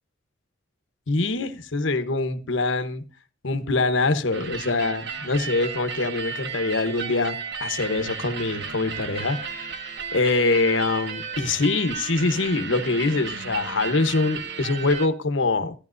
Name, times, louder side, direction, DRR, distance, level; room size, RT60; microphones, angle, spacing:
voice 1, 1.1-3.0 3.4-9.7 10.1-15.7, left 3 dB, 65° left, 10 dB, 1.0 m, -24 dB
sound 1, 4.3-15.1, right 6 dB, 55° right, 1.1 m, -34 dB
13.5 x 10.0 x 2.6 m, 0.36 s
head